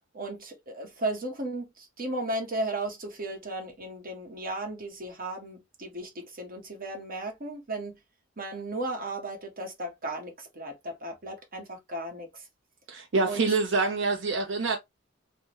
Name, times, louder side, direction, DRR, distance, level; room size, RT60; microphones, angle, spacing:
voice 1, 0.1-7.9 8.4-12.5 13.2-13.4, right 2 dB, 50° right, 1.1 m, -35 dB
voice 2, 12.9-14.8, right 3 dB, 65° right, 0.6 m, -26 dB
3.4 x 2.1 x 3.0 m
head